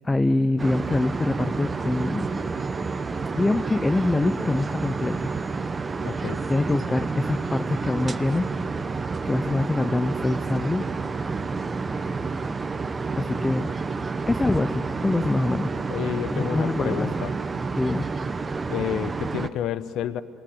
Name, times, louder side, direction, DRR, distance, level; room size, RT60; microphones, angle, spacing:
voice 1, 0.0-2.3 3.3-5.2 6.5-8.5 9.2-10.9 13.2-13.7 14.3-15.7 16.3-17.1 17.8-18.1, left 2 dB, 15° left, 12 dB, 0.6 m, -24 dB
sound 1, 0.6-19.5, right 4 dB, 20° right, 0.8 m, -29 dB
voice 2, 6.0-6.4 15.9-17.3 18.7-20.2, left 10 dB, 60° left, 15 dB, 0.8 m, -30 dB
27.5 x 19.5 x 9.5 m, 2.9 s
cardioid pair, 120°, 0 cm